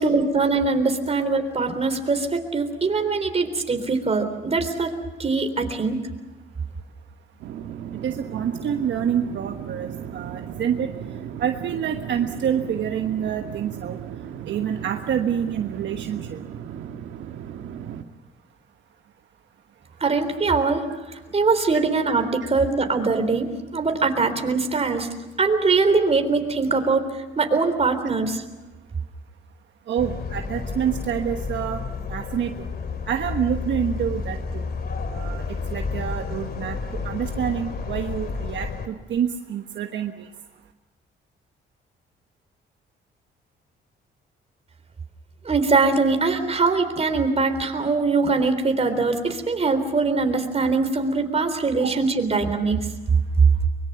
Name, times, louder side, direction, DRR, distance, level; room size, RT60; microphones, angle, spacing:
voice 1, 0.0-4.9 5.2-6.0 20.0-25.1 25.4-28.4 45.4-52.8, right 4 dB, 30° right, 7 dB, 3.7 m, -22 dB
sound 1, 7.4-18.0, right 9 dB, 85° right, 1.5 m, -36 dB
voice 2, 8.0-10.9 11.4-14.0 14.5-16.4 29.9-31.8 32.1-32.7 33.1-34.7 35.1-35.4 35.7-36.8 37.0-40.3 51.8-51.9, right 8 dB, 65° right, 5 dB, 1.3 m, -27 dB
sound 2, 30.0-38.9, left 4 dB, 50° left, 2.7 m, -31 dB
23.5 x 22.5 x 7.1 m, 1.2 s
cardioid pair, 90°, 20 cm